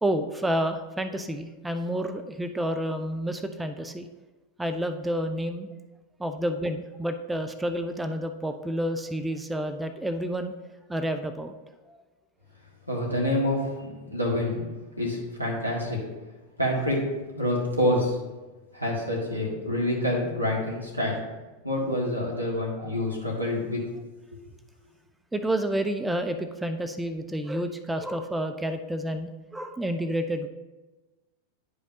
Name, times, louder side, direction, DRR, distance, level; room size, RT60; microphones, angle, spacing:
voice 1, 0.0-4.1 4.6-5.7 6.2-10.5 10.9-11.5 11.9-12.0 25.3-30.5, right 1 dB, 5° right, 8 dB, 0.4 m, -29 dB
voice 2, 12.9-14.7 15.0-16.0 16.6-17.1 17.3-18.2 18.7-21.2 21.6-23.8, left 1 dB, 90° right, -3 dB, 1.7 m, -27 dB
10.5 x 5.0 x 2.7 m, 1.2 s
figure-of-eight pair, 90°, 0 cm